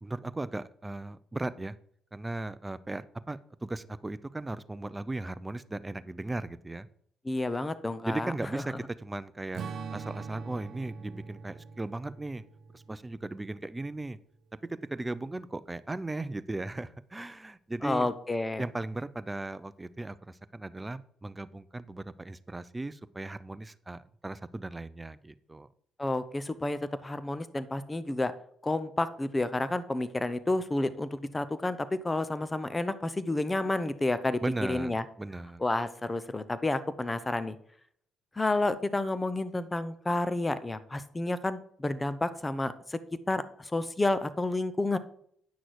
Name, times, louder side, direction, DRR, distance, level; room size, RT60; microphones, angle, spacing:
voice 1, 0.0-1.8 2.1-6.9 8.0-9.6 9.9-12.4 12.7-14.2 14.7-18.1 18.6-25.7 34.4-34.9 35.2-35.6, right 2 dB, 15° right, 15 dB, 0.6 m, -37 dB
voice 2, 7.2-8.6 17.8-18.6 26.0-28.3 28.6-34.4 34.7-35.0 35.6-37.6 38.4-43.0 43.3-45.0, left 2 dB, 20° left, 14 dB, 0.8 m, -30 dB
Strum, 9.5-14.2, right 5 dB, 60° right, 0.7 m, -43 dB
9.4 x 6.3 x 4.7 m, 0.65 s
supercardioid pair, 70°, 0 cm